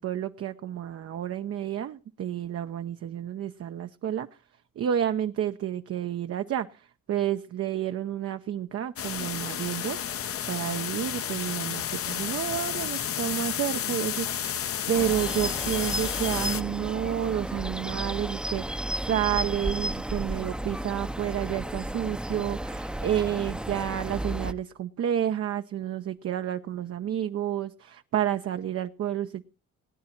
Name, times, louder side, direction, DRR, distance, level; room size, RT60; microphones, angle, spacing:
voice 1, 0.0-4.3 4.8-10.0 10.5-29.4, right 10 dB, 50° right, 8 dB, 0.6 m, -30 dB
sound 1, 9.0-16.6, left 9 dB, 50° left, 0.7 m, -31 dB
sound 2, 14.9-24.5, right 1 dB, 5° right, 0.6 m, -33 dB
18.5 x 9.5 x 4.4 m, 0.35 s
cardioid pair, 90°, 30 cm